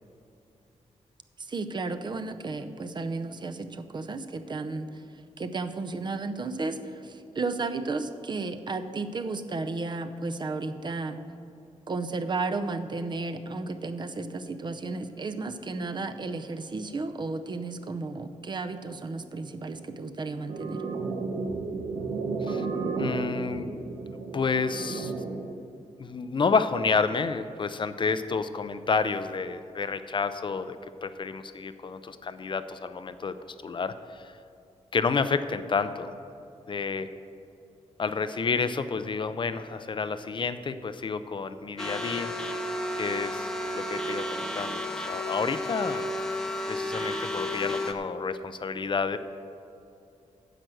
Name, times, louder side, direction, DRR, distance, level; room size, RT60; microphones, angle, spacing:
voice 1, 1.4-5.0 5.4-11.2 11.9-20.8, right 3 dB, 35° right, 8 dB, 0.6 m, -33 dB
sound 1, 20.5-25.5, right 4 dB, 85° right, 1.2 m, -32 dB
voice 2, 23.0-23.7 24.3-25.1 26.0-33.3 33.6-34.3 34.9-36.1 36.7-37.1 38.0-42.3 43.0-46.1 46.6-49.2, left 5 dB, 40° left, 11 dB, 0.5 m, -30 dB
sound 2, 41.8-47.9, left 1 dB, 5° left, 0.8 m, -32 dB
10.0 x 7.6 x 7.8 m, 2.7 s
wide cardioid pair, 155°, 13 cm